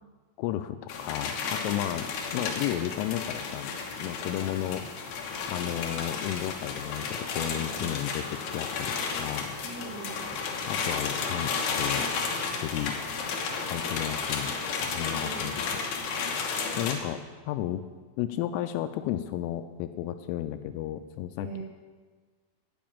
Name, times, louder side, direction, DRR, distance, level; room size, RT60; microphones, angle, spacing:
voice 1, 0.4-3.7 4.0-4.8 5.5-9.5 10.7-11.5 11.8-12.1 12.5-12.9 13.7-15.8 16.8-17.8 18.2-21.6, left 12 dB, 85° left, 9 dB, 3.0 m, -33 dB
sound 1, 0.9-16.9, left 5 dB, 70° left, 2.8 m, -33 dB
voice 2, 7.4-7.9 9.6-10.3 15.0-15.6 21.4-21.6, right 5 dB, 80° right, -5 dB, 4.2 m, -41 dB
12.5 x 5.6 x 8.7 m, 1.4 s
omnidirectional pair, 5.8 m